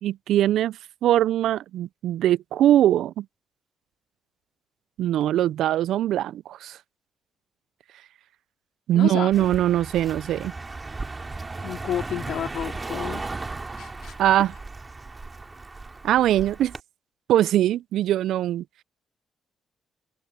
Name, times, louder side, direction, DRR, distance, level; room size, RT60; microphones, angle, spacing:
voice 1, 0.0-3.3 5.0-6.8 8.9-10.5 14.2-14.5 16.0-16.7 17.3-18.6, right 12 dB, 70° right, 0.6 m, -21 dB
voice 2, 8.9-9.6 11.6-13.2 13.8-14.1, left 10 dB, 65° left, 2.5 m, -31 dB
Car passing by, 9.3-16.8, right 3 dB, 30° right, 3.0 m, -36 dB
open air
hypercardioid pair, 45°, 0 cm